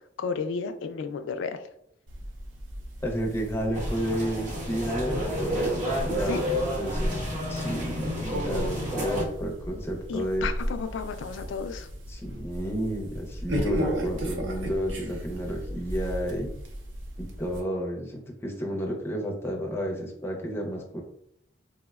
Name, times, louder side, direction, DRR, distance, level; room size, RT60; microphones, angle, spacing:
voice 1, 0.2-1.7 6.3-6.4 10.1-11.9, left 5 dB, 80° left, 8 dB, 0.3 m, -32 dB
sound 1, 2.1-17.6, equal, 85° right, 0.5 m, -35 dB
voice 2, 3.0-10.5 12.1-16.5 17.2-21.0, equal, 15° left, 0 dB, 0.5 m, -31 dB
sound 2, 3.7-9.2, equal, 40° right, 0.7 m, -30 dB
3.5 x 2.0 x 2.3 m, 0.74 s
head